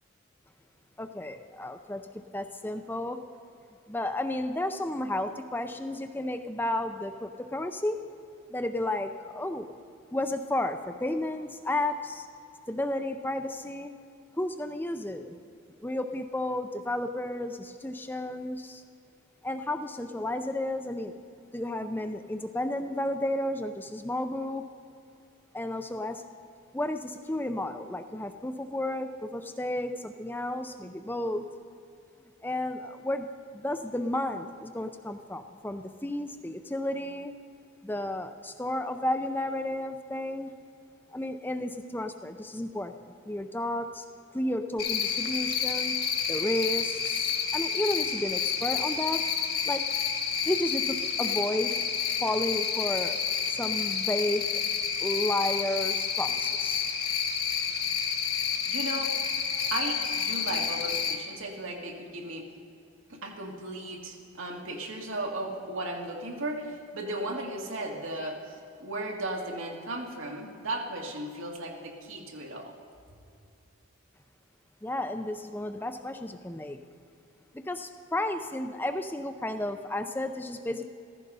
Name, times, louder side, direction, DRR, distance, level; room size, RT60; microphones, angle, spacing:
voice 1, 1.0-2.0 2.3-3.2 3.9-8.0 8.5-9.7 10.1-12.3 12.7-13.9 14.4-15.4 15.8-18.8 19.4-21.1 21.5-24.6 25.5-26.2 26.7-31.4 32.4-33.3 33.5-37.3 37.8-40.5 41.1-42.9 43.3-44.0 44.3-45.9 46.3-49.2 49.7-49.9 50.4-51.8 52.2-53.2 53.5-54.6 55.0-56.8 74.8-76.8 77.5-80.9, left 1 dB, 10° left, 7 dB, 0.5 m, -32 dB
Cricket, 44.8-61.1, left 7 dB, 50° left, 1.5 m, -29 dB
voice 2, 58.7-59.2 59.7-62.5 63.1-68.6 68.8-72.7, right 1 dB, 80° right, 1 dB, 2.0 m, -36 dB
15.0 x 15.0 x 5.4 m, 2.5 s
head